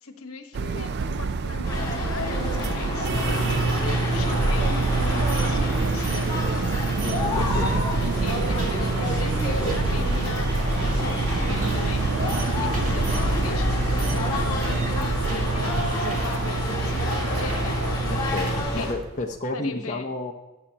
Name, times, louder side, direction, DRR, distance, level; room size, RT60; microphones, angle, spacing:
voice 1, 0.0-6.3 7.2-10.5 10.8-12.1 12.6-17.8 18.8-18.9 19.5-20.1, left 4 dB, 75° left, 6 dB, 1.1 m, -38 dB
sound 1, 0.5-19.4, right 4 dB, 50° right, 0.3 m, -29 dB
sound 2, 1.6-18.9, left 1 dB, 20° left, 1.8 m, -28 dB
sound 3, 3.0-18.6, right 3 dB, 75° right, 2.0 m, -29 dB
voice 2, 7.0-7.7 8.4-8.5 18.1-20.3, left 2 dB, 35° left, 2 dB, 0.6 m, -31 dB
11.5 x 7.2 x 2.8 m, 1.1 s
head